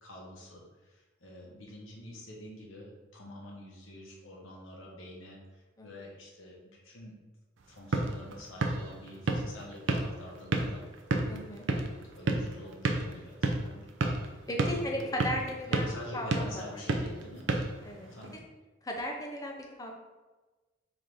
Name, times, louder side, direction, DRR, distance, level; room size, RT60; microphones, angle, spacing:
voice 1, 0.0-7.2 7.7-10.8 12.1-14.0 14.7-17.5 18.1-18.4, left 1 dB, 90° left, -3 dB, 1.2 m, -47 dB
sound 1, 7.6-18.4, right 2 dB, 70° right, 0.5 m, -33 dB
voice 2, 11.3-11.6 14.5-15.8 16.1-16.6 17.8-18.1 18.8-19.9, equal, 20° left, 0 dB, 0.6 m, -36 dB
3.8 x 2.7 x 4.8 m, 1.2 s
head